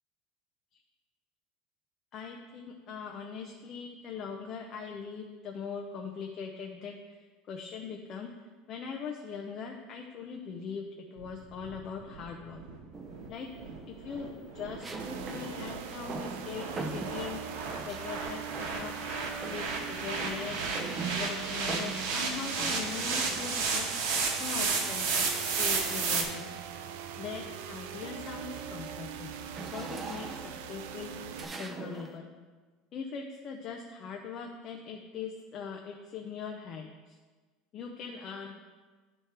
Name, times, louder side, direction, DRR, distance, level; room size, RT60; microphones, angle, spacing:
voice 1, 2.1-6.9 7.5-8.3 8.7-10.8 11.1-12.6 13.3-14.3 14.5-18.9 19.4-20.6 21.1-23.9 24.4-25.2 25.6-26.5 27.2-29.3 29.7-31.1 31.6-32.3 32.9-37.2 37.7-38.6, left 6 dB, 35° left, 2 dB, 0.5 m, -41 dB
sound 1, 11.2-26.2, right 4 dB, 70° right, 1.1 m, -34 dB
sound 2, 12.9-13.5 14.8-18.1 18.5-19.0 19.3-23.7 24.9-26.3 26.8-27.0 27.4-32.2, right 4 dB, 15° right, 0.5 m, -43 dB
sound 3, 15.0-31.4, right 7 dB, 90° right, 0.5 m, -42 dB
10.5 x 3.6 x 4.3 m, 1.4 s
cardioid pair, 170°, 0 cm